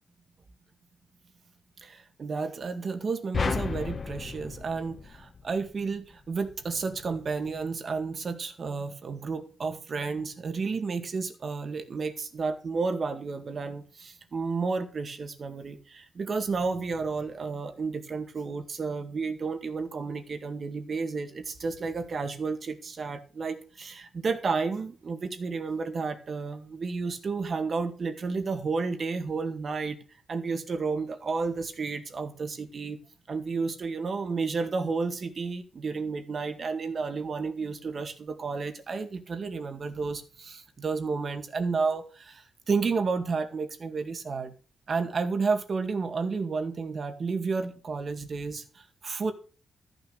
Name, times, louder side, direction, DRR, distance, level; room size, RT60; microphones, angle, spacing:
voice 1, 1.8-30.0 30.3-33.0 33.3-44.5 44.9-49.3, right 4 dB, 45° right, 2.0 m, -31 dB
sound 1, 3.3-5.8, left 5 dB, 40° left, 0.8 m, -33 dB
14.0 x 6.7 x 6.5 m
cardioid pair, 125°, 0 cm